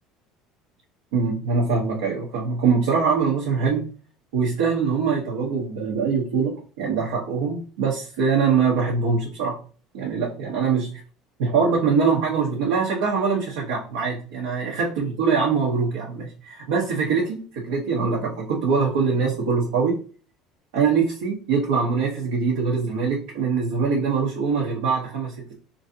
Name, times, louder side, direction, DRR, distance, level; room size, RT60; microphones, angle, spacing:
voice 1, 1.1-3.8 4.3-9.6 9.9-10.9 11.4-20.0 20.7-25.5, right 5 dB, 90° right, -3 dB, 0.9 m, -23 dB
3.1 x 2.6 x 2.7 m, 0.38 s
supercardioid pair, 105°, 0 cm